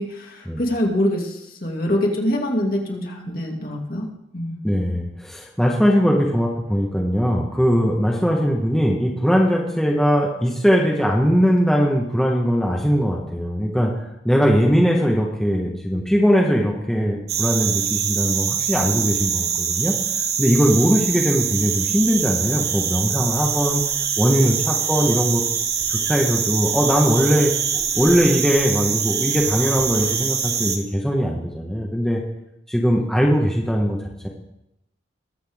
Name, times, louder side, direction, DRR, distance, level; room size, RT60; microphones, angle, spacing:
voice 1, 0.0-4.1 4.3-4.6, left 1 dB, 50° left, 0 dB, 2.4 m, -24 dB
voice 2, 4.6-20.0 20.4-23.8 24.2-25.4 25.9-27.5 27.9-32.2 32.7-34.0 34.2-34.3, equal, 5° left, -2 dB, 1.2 m, -20 dB
sound 1, 17.3-30.8, right 7 dB, 55° right, 1.2 m, -24 dB
21.0 x 8.1 x 3.6 m, 0.85 s
head